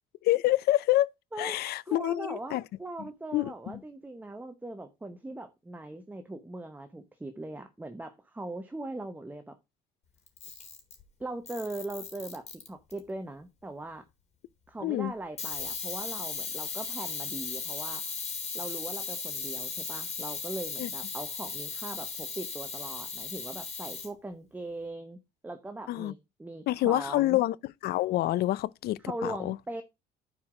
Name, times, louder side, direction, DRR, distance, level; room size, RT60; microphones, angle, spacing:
voice 1, 0.2-1.1 1.4-2.6 3.3-3.8 14.8-15.1 20.8-20.9 25.9-26.1 26.7-29.6, left 15 dB, 70° left, 0.5 m, -27 dB
voice 2, 1.9-9.6 11.2-14.1 14.7-18.0 18.5-25.2 25.4-27.4 29.0-29.8, right 2 dB, 10° right, 0.8 m, -40 dB
Camera, 10.3-11.0 11.5-13.0 15.4-24.1, left 5 dB, 40° left, 3.1 m, -37 dB
9.7 x 4.8 x 4.8 m
cardioid pair, 110°, 17 cm